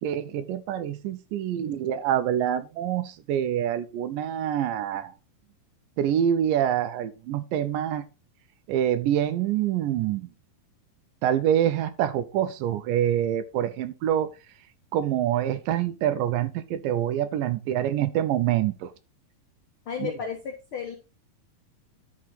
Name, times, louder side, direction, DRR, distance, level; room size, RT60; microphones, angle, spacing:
voice 1, 0.0-5.1 6.0-8.1 8.7-10.3 11.2-14.3 14.9-18.9 20.0-20.1, right 10 dB, 80° right, 2.1 m, -26 dB
voice 2, 19.9-21.0, left 7 dB, 80° left, 1.1 m, -33 dB
11.0 x 4.7 x 4.0 m
omnidirectional pair, 4.2 m